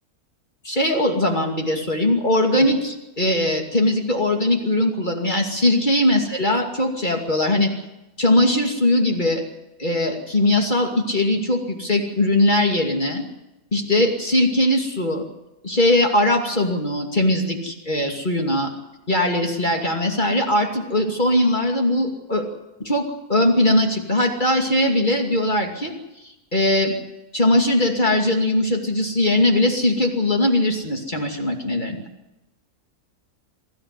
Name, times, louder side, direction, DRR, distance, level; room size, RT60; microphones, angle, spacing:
voice 1, 0.6-7.7 8.2-9.4 9.8-13.2 13.7-15.2 15.6-18.7 19.1-22.5 22.8-25.9 26.5-26.9 27.3-32.0, left 1 dB, 30° left, 2 dB, 2.7 m, -20 dB
23.5 x 14.0 x 9.9 m, 0.98 s
omnidirectional pair, 1.6 m